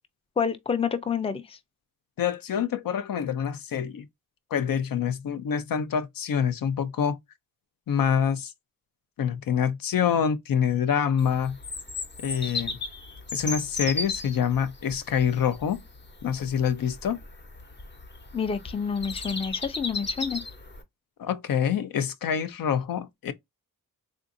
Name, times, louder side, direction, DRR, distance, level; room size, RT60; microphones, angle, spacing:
voice 1, 0.4-1.6 18.3-20.4, left 6 dB, 15° left, 0.4 m, -28 dB
voice 2, 2.2-4.1 4.5-7.2 7.9-8.5 9.2-11.6 12.2-12.8 13.3-15.8 16.2-17.2 21.2-23.3, left 8 dB, 80° left, 0.6 m, -26 dB
Bird vocalization bird call bird song, 11.2-20.8, left 3 dB, 35° left, 0.8 m, -36 dB
3.7 x 2.5 x 2.5 m
wide cardioid pair, 135°, 33 cm